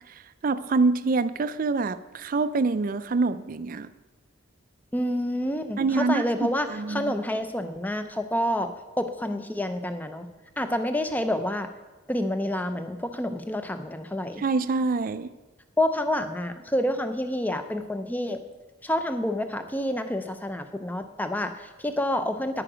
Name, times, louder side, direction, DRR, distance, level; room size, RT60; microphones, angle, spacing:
voice 1, 0.4-3.9 5.8-7.1 14.4-15.3, right 3 dB, 45° right, 14 dB, 0.4 m, -26 dB
voice 2, 4.9-10.3 10.6-11.7 12.1-14.4 15.8-18.4 18.8-22.6, left 1 dB, 10° left, 8 dB, 0.5 m, -28 dB
9.9 x 9.3 x 5.0 m, 1.1 s
head